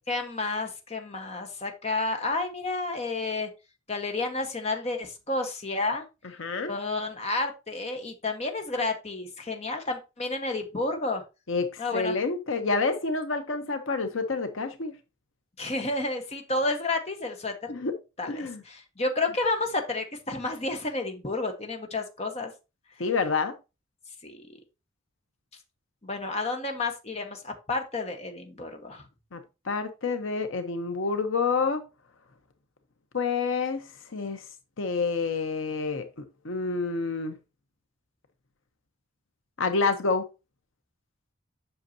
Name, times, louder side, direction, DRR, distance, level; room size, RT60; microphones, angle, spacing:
voice 1, 0.1-3.5 3.9-6.0 6.7-11.2 11.8-12.2 15.6-17.7 18.2-22.5 24.2-24.4 26.0-29.0, left 2 dB, 30° left, 1.2 m, -31 dB
voice 2, 6.4-6.7 11.5-14.9 17.7-17.9 18.3-18.6 23.0-23.5 29.3-31.8 33.1-34.4 34.8-36.1 36.4-37.4 39.6-40.3, left 4 dB, 70° left, 0.9 m, -28 dB
8.0 x 6.5 x 2.8 m
head